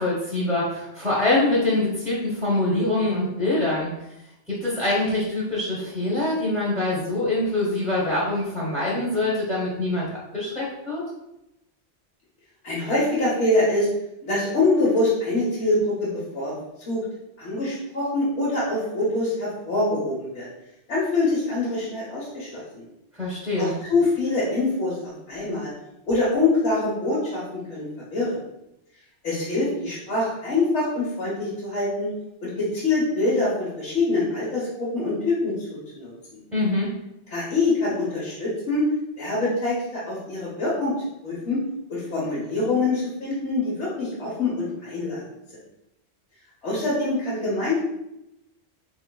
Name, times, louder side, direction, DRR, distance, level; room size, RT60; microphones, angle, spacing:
voice 1, 0.0-3.9 4.5-11.0 23.1-23.7 36.5-36.9, left 2 dB, ahead, -7 dB, 0.6 m, -24 dB
voice 2, 12.6-13.9 14.2-16.5 16.9-17.0 17.4-20.5 20.9-22.8 23.6-25.7 26.1-27.9 28.1-28.4 29.2-32.1 32.4-36.4 37.3-38.9 39.2-40.9 41.2-41.6 41.9-45.2 46.6-47.8, left 2 dB, 90° left, -8 dB, 1.2 m, -24 dB
3.9 x 3.0 x 2.2 m, 0.86 s
omnidirectional pair, 1.1 m